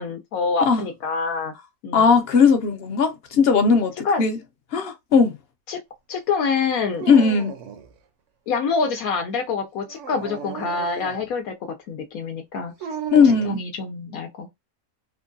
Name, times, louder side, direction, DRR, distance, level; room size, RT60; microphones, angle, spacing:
voice 1, 0.0-1.5 1.8-2.1 4.0-4.2 5.7-5.8 6.1-7.1 8.5-11.6 11.9-12.7 13.5-14.5, left 5 dB, 80° left, 1.1 m, -26 dB
voice 2, 1.9-4.4 4.7-5.3 7.1-7.5 13.1-13.6, left 5 dB, 55° left, 0.8 m, -18 dB
Dog, 6.9-7.9 9.8-11.3 12.8-13.6, right 7 dB, 65° right, 0.9 m, -34 dB
3.6 x 2.2 x 2.5 m
omnidirectional pair, 1.5 m